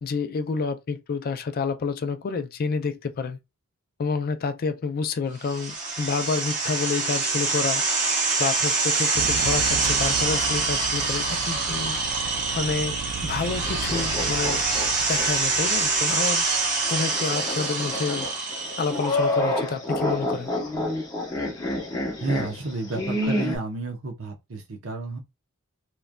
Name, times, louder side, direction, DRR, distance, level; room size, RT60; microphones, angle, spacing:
voice 1, 0.0-3.4 4.0-7.8 8.4-12.0 12.6-14.6 15.1-16.4 16.9-18.3 18.8-20.5, left 5 dB, 45° left, 0.4 m, -28 dB
sound 1, 5.4-19.2, right 3 dB, 40° right, 0.8 m, -25 dB
sound 2, 9.1-17.2, right 6 dB, 90° right, 0.3 m, -35 dB
sound 3, 13.7-15.3 15.7-15.8 16.8-23.6, left 1 dB, 20° left, 0.8 m, -29 dB
voice 2, 22.2-25.2, right 3 dB, 70° right, 0.8 m, -31 dB
3.0 x 2.4 x 2.2 m
head